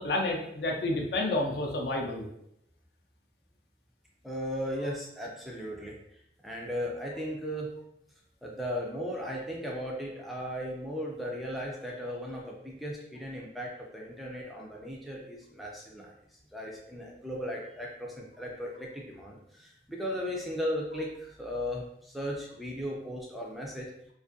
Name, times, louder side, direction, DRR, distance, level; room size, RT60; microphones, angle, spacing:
voice 1, 0.0-2.3, left 2 dB, 65° left, 1 dB, 0.5 m, -30 dB
voice 2, 4.2-6.0 6.4-7.7 8.4-16.1 16.5-23.9, equal, ahead, -3 dB, 0.3 m, -36 dB
2.5 x 2.4 x 2.5 m, 0.76 s
head